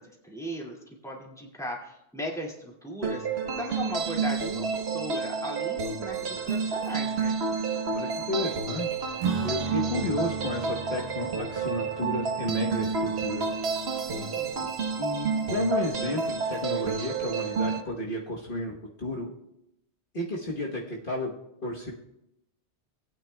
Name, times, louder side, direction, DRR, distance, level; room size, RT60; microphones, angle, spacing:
voice 1, 0.0-7.4 14.1-14.7, equal, 5° left, -2 dB, 2.1 m, -38 dB
sound 1, 3.0-17.8, right 5 dB, 65° right, 1.3 m, -30 dB
voice 2, 7.9-9.0 9.4-13.5 15.0-19.3 20.1-21.3 21.6-21.9, left 1 dB, 50° left, -3 dB, 1.3 m, -32 dB
Acoustic guitar / Strum, 9.2-15.1, right 4 dB, 85° right, 1.4 m, -39 dB
19.0 x 8.9 x 2.2 m, 0.83 s
omnidirectional pair, 1.2 m